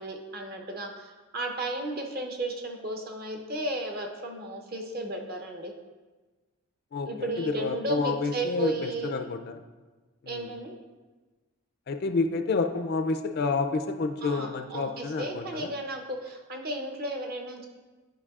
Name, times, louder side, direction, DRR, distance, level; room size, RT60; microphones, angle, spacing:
voice 1, 0.0-5.7 7.1-9.1 10.3-10.7 14.2-17.7, right 2 dB, 45° right, 2 dB, 0.7 m, -34 dB
voice 2, 6.9-9.6 10.2-10.5 11.9-15.7, left 4 dB, 50° left, 7 dB, 0.4 m, -29 dB
9.8 x 5.2 x 2.4 m, 1.3 s
head